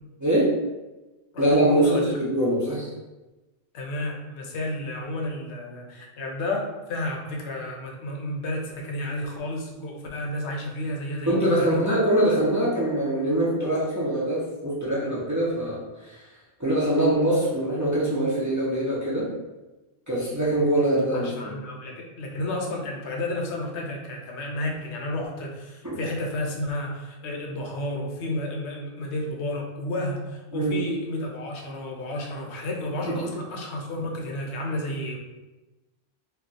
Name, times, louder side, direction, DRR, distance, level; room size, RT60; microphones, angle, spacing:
voice 1, 0.2-0.5 1.4-2.9 11.3-16.3 16.6-19.3 20.1-21.6 25.9-26.0 30.5-30.8 33.1-33.3, right 1 dB, 25° right, -7 dB, 0.4 m, -23 dB
voice 2, 1.3-2.0 3.7-12.0 21.1-35.2, left 1 dB, 90° left, 1 dB, 0.9 m, -31 dB
2.3 x 2.2 x 3.9 m, 1.1 s
omnidirectional pair, 1.1 m